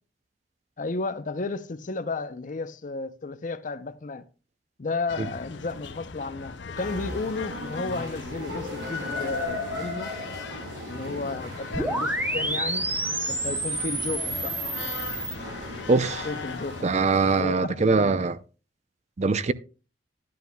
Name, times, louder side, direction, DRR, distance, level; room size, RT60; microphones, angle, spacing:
voice 1, 0.8-4.2 4.8-10.1 10.9-12.9 13.3-14.5 15.7-15.9 16.2-16.9 17.4-18.2, left 3 dB, 45° left, 0.6 m, -33 dB
sound 1, 5.1-16.8, left 4 dB, 90° left, 0.6 m, -40 dB
sound 2, 6.8-17.4, left 1 dB, 85° right, 5.4 m, -37 dB
sound 3, 11.7-15.3, right 1 dB, 10° right, 0.9 m, -29 dB
voice 2, 15.9-16.3 16.8-18.4 19.2-19.5, right 4 dB, 40° right, 0.5 m, -22 dB
12.5 x 10.5 x 2.3 m
head